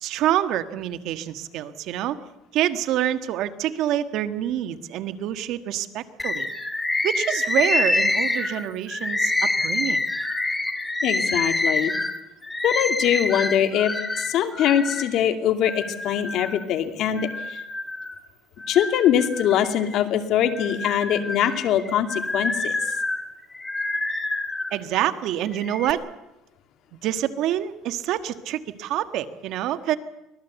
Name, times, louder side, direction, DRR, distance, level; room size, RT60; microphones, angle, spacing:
voice 1, 0.0-2.2 2.5-6.5 7.0-10.0 24.7-26.0 27.0-30.0, right 12 dB, 65° right, 10 dB, 1.5 m, -26 dB
Bird, 6.2-15.1 15.6-16.6 17.2-18.2 18.6-20.0 20.5-24.8 25.5-25.9, left 2 dB, 10° left, 2.4 m, -27 dB
voice 2, 11.0-11.9 12.6-17.6 18.7-22.7, left 10 dB, 60° left, 7 dB, 2.4 m, -23 dB
24.0 x 18.5 x 8.1 m, 0.94 s
cardioid pair, 130°, 0 cm